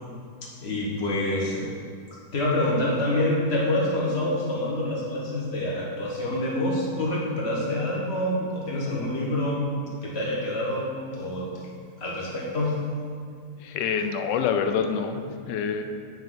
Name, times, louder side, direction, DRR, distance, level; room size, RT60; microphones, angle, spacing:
voice 1, 0.4-1.6 2.3-9.6 10.0-11.6 12.0-12.8, left 1 dB, 35° left, -4 dB, 1.4 m, -27 dB
voice 2, 13.6-15.8, left 6 dB, 70° left, 6 dB, 1.1 m, -26 dB
9.0 x 5.3 x 3.9 m, 2.1 s
omnidirectional pair, 2.1 m